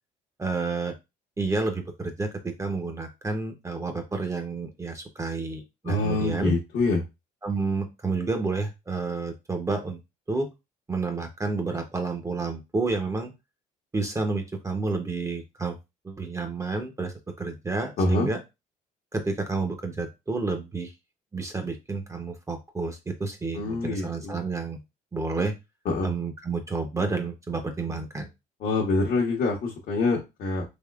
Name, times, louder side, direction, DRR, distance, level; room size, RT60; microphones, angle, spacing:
voice 1, 0.4-0.9 1.4-6.5 7.4-10.0 10.3-10.5 10.9-13.3 13.9-15.8 16.0-18.4 19.1-20.9 21.3-24.8 25.1-25.5 26.0-28.3, right 3 dB, 15° right, 5 dB, 0.6 m, -30 dB
voice 2, 5.9-7.0 18.0-18.3 23.6-24.4 25.9-26.1 28.6-30.6, left 3 dB, 60° left, -2 dB, 0.9 m, -25 dB
3.5 x 3.1 x 2.3 m, 0.23 s
cardioid pair, 110°, 17 cm